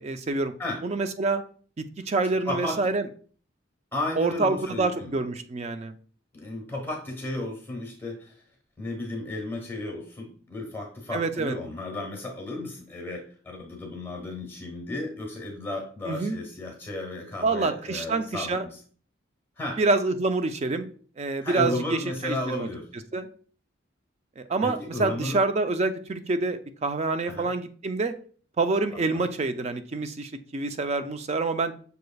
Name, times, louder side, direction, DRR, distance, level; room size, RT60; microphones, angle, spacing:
voice 1, 0.0-0.5 0.8-1.4 1.8-3.1 4.2-5.9 11.1-11.6 16.1-16.4 17.4-18.6 19.8-20.9 21.2-22.7 23.1-23.3 24.4-28.1 28.6-31.7, right 3 dB, 35° right, 9 dB, 0.3 m, -27 dB
voice 2, 2.5-2.8 3.9-5.1 6.3-8.4 8.8-18.8 19.6-19.8 21.4-22.8 24.6-25.4 27.3-27.5 28.9-29.2, left 2 dB, 10° left, 0 dB, 1.2 m, -34 dB
6.7 x 3.2 x 2.3 m, 0.44 s
head